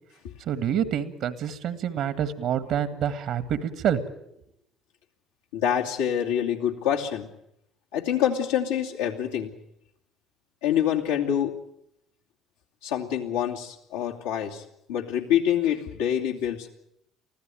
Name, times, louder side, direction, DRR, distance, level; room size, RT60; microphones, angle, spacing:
voice 1, 0.4-4.1, right 9 dB, 60° right, 13 dB, 1.8 m, -27 dB
voice 2, 5.5-7.3 7.9-9.5 10.6-11.5 12.8-14.6 14.9-16.7, left 10 dB, 80° left, -2 dB, 2.6 m, -26 dB
24.5 x 15.5 x 9.2 m, 0.80 s
hypercardioid pair, 55°, 0 cm